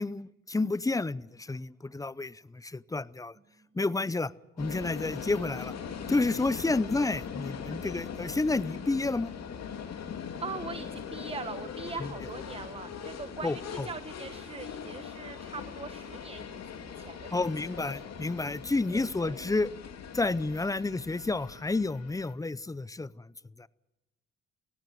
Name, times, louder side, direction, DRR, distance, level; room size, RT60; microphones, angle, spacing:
voice 1, 0.0-3.4 3.7-4.3 4.6-5.7 6.1-9.3 12.0-12.1 13.4-13.9 17.3-19.7 20.1-23.3 23.6-23.7, left 3 dB, 10° left, 20 dB, 0.6 m, -30 dB
sound 1, 4.6-22.3, left 7 dB, 60° left, 2.8 m, -41 dB
voice 2, 10.4-17.9 18.9-19.4, right 4 dB, 20° right, 12 dB, 1.0 m, -42 dB
17.5 x 16.5 x 9.2 m, 1.1 s
cardioid pair, 90°, 30 cm